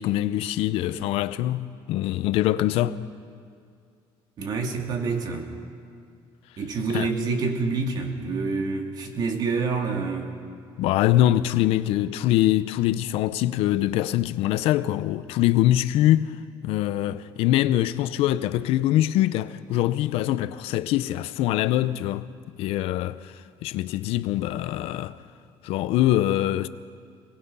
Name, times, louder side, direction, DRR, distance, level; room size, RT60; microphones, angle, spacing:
voice 1, 0.0-3.0 6.9-7.1 10.8-16.3 16.6-22.3 22.6-23.3 23.6-25.2 25.6-26.7, left 14 dB, 80° left, 0.7 m, -23 dB
voice 2, 4.4-5.5 6.6-10.3, right 4 dB, 45° right, 2.5 m, -27 dB
27.0 x 19.0 x 5.6 m
cardioid pair, 150°, 10 cm